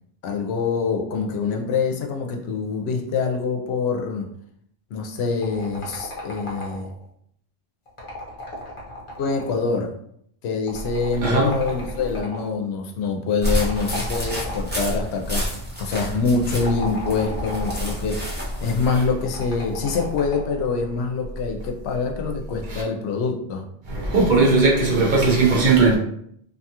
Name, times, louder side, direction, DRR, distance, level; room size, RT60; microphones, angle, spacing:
voice 1, 0.2-4.3 4.9-6.9 9.2-9.9 10.4-15.5 15.8-18.2 18.6-23.6, left 4 dB, 75° left, 0.8 m, -25 dB
sound 1, 5.4-7.0 7.9-9.7 10.7-12.5 13.5-14.9 16.4-18.0 19.3-20.6, left 1 dB, 30° left, 0.7 m, -36 dB
voice 2, 11.2-11.6 22.7-22.8 23.8-26.0, right 3 dB, 50° right, 0.7 m, -18 dB
sound 2, 13.4-19.0, equal, 10° right, 0.7 m, -29 dB
2.6 x 2.3 x 2.8 m
omnidirectional pair, 1.1 m